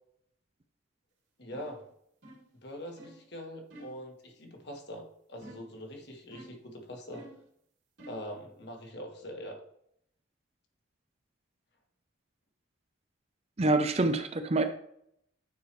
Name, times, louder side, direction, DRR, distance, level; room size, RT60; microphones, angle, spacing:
voice 1, 1.4-1.8 2.6-7.3 8.1-9.6, equal, 55° left, 2 dB, 1.5 m, -43 dB
sound 1, 1.5-1.8 2.2-2.5 3.0-3.2 3.7-4.0 5.4-5.8 6.3-6.7 7.1-7.5 8.0-8.3, right 1 dB, 65° right, 2.5 m, -50 dB
voice 2, 13.6-14.6, right 2 dB, 30° right, 8 dB, 0.5 m, -26 dB
9.3 x 4.8 x 3.1 m, 0.71 s
head